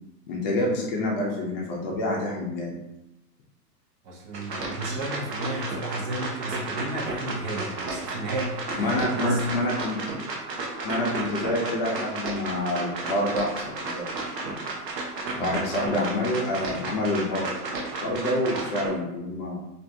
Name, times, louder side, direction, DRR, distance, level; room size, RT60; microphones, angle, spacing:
voice 1, 0.3-2.7 8.8-10.0 10.8-14.2 15.4-17.5 18.0-19.6, left 1 dB, 35° left, -2 dB, 0.5 m, -27 dB
voice 2, 4.0-9.5 15.3-15.6, right 1 dB, 40° right, -3 dB, 0.7 m, -32 dB
sound 1, 4.3-18.9, right 3 dB, 85° right, 0.8 m, -33 dB
2.5 x 2.1 x 2.6 m, 0.94 s
hypercardioid pair, 120°, 49 cm